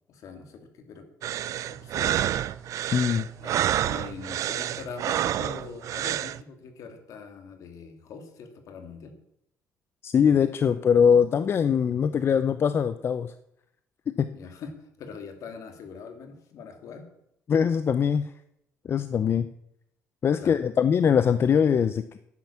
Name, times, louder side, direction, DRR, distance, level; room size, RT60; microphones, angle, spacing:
voice 1, 0.1-1.1 1.7-2.2 3.4-3.5 3.8-9.1 14.3-17.1 20.4-20.6, left 5 dB, 65° left, 6 dB, 2.7 m, -42 dB
sound 1, 1.2-6.4, right 12 dB, 65° right, 0.5 m, -28 dB
voice 2, 2.9-3.3 10.0-13.3 14.1-14.3 17.5-18.3 18.8-19.5 20.2-22.2, left 7 dB, 40° left, 12 dB, 0.6 m, -22 dB
11.5 x 9.9 x 7.3 m, 0.76 s
cardioid pair, 115°, 6 cm